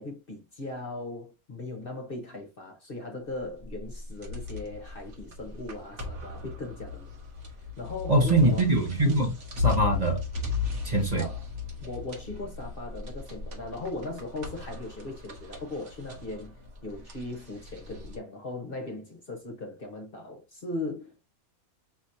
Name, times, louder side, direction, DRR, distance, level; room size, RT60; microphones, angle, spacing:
voice 1, 0.0-7.1 7.8-8.7 11.2-11.5 11.8-16.5 16.8-21.1, left 2 dB, 40° left, 1.1 m, -38 dB
sound 1, 3.4-18.2, left 5 dB, 55° right, 1.5 m, -36 dB
voice 2, 8.1-10.2 10.8-11.2, right 1 dB, 30° right, 1.1 m, -23 dB
5.5 x 3.0 x 2.6 m
omnidirectional pair, 1.6 m